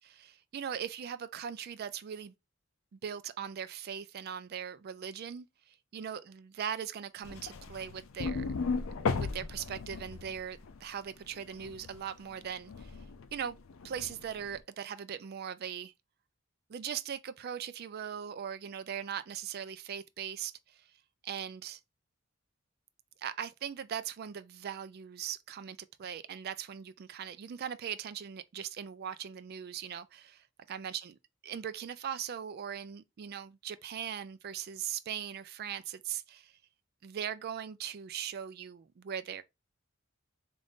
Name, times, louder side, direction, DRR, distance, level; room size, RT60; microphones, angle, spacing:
voice 1, 0.2-2.3 2.9-8.4 9.1-13.0 13.3-13.6 13.8-15.9 16.7-20.8 21.2-21.8 23.2-31.1 31.4-36.5 37.0-39.4, right 8 dB, 50° right, 0.3 m, -40 dB
sound 1, 7.2-12.0 12.3-14.6, left 4 dB, 85° left, 0.5 m, -36 dB
3.8 x 2.6 x 3.4 m
head